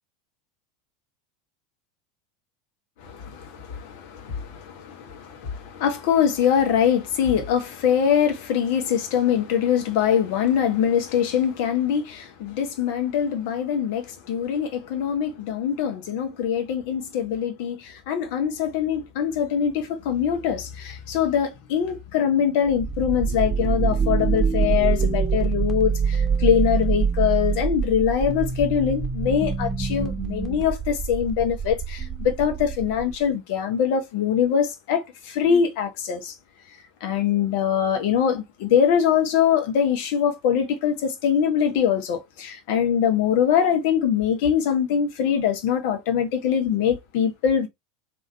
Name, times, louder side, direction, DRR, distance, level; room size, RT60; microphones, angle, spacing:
voice 1, 3.0-36.3 37.0-47.7, left 8 dB, 60° left, 1.3 m, -23 dB
sound 1, 22.7-33.3, right 6 dB, 15° right, 1.3 m, -25 dB
3.7 x 3.0 x 4.2 m
figure-of-eight pair, 80°, 0 cm